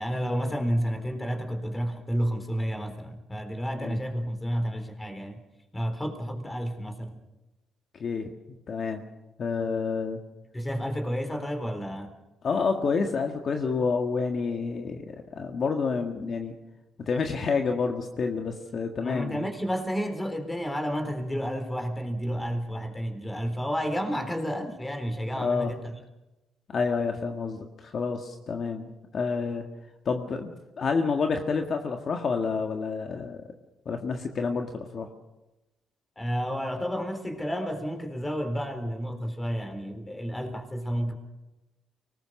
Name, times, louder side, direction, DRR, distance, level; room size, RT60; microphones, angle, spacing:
voice 1, 0.0-5.4 5.7-7.2 10.5-12.1 19.0-26.0 36.2-41.1, equal, 15° left, 6 dB, 3.9 m, -31 dB
voice 2, 8.7-9.0 9.4-10.2 12.4-16.5 17.1-19.4 25.4-25.7 26.7-29.6 30.0-33.4 33.8-35.1, left 5 dB, 50° left, 4 dB, 1.7 m, -29 dB
24.0 x 19.5 x 6.5 m, 1.0 s
cardioid pair, 90°, 0 cm